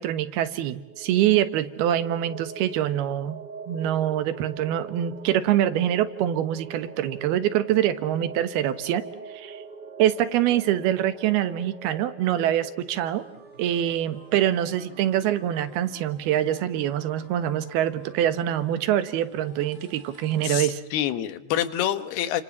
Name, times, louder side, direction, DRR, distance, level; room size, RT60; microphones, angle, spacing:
voice 1, 0.0-9.0 9.3-9.6 10.0-13.3 13.6-20.8, right 11 dB, 80° right, 12 dB, 3.2 m, -25 dB
sound 1, 0.7-15.0, right 4 dB, 55° right, 1.2 m, -43 dB
sound 2, 13.1-20.6, right 1 dB, 15° right, 6.5 m, -50 dB
voice 2, 20.4-22.4, left 11 dB, 85° left, 12 dB, 3.4 m, -27 dB
30.0 x 26.0 x 7.3 m, 0.83 s
omnidirectional pair, 4.5 m